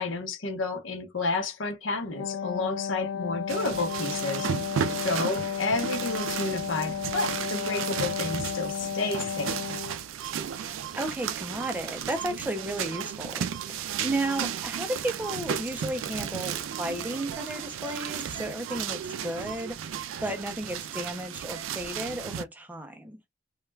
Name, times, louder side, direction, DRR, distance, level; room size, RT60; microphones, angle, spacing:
voice 1, 0.0-4.5 5.0-9.6, left 3 dB, 75° left, 0.7 m, -31 dB
Wind instrument woodwind instrument, 2.0-10.0, left 7 dB, 90° left, 0.4 m, -33 dB
sound 1, 3.5-22.4, right 8 dB, 80° right, 0.3 m, -34 dB
voice 2, 11.0-23.2, right 1 dB, 10° right, 0.4 m, -34 dB
2.3 x 2.1 x 3.1 m
head